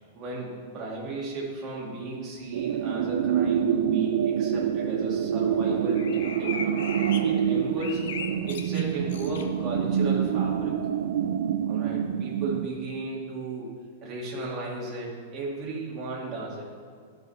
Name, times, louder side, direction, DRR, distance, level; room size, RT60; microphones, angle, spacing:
voice 1, 0.1-6.6 7.2-8.0 8.4-10.7 11.6-13.7 14.0-16.7, right 2 dB, 20° right, -5 dB, 2.4 m, -35 dB
sound 1, 2.5-12.7, right 8 dB, 60° right, 0.5 m, -26 dB
sound 2, 4.6-10.7, left 5 dB, 65° left, 0.9 m, -40 dB
12.0 x 5.4 x 5.6 m, 2.1 s
supercardioid pair, 170°, 0 cm